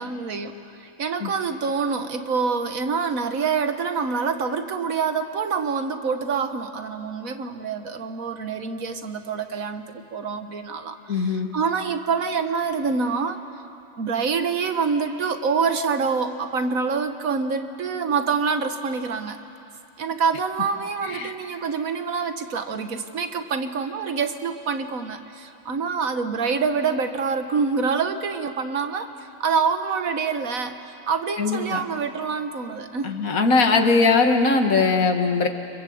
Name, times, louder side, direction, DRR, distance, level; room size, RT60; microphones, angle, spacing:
voice 1, 0.0-13.4 14.0-19.4 20.0-29.1 29.4-33.2, right 5 dB, 70° right, 8 dB, 1.7 m, -26 dB
voice 2, 11.1-11.5 21.0-21.3 31.4-31.8 33.0-35.5, left 4 dB, 75° left, 5 dB, 2.1 m, -20 dB
29.5 x 25.0 x 7.9 m, 2.7 s
omnidirectional pair, 1.5 m